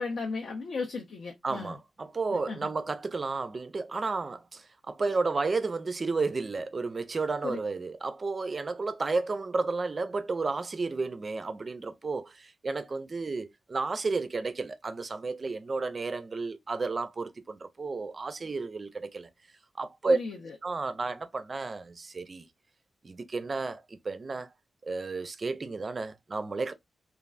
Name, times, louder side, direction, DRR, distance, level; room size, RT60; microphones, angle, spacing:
voice 1, 0.0-1.8 2.3-2.7 7.4-7.6 20.1-20.6, left 4 dB, 70° left, 0.5 m, -35 dB
voice 2, 1.4-19.3 19.8-20.2 20.6-22.5 23.0-24.5 24.8-26.7, right 3 dB, 30° right, 0.3 m, -32 dB
3.2 x 2.3 x 2.4 m
wide cardioid pair, 170°, 0 cm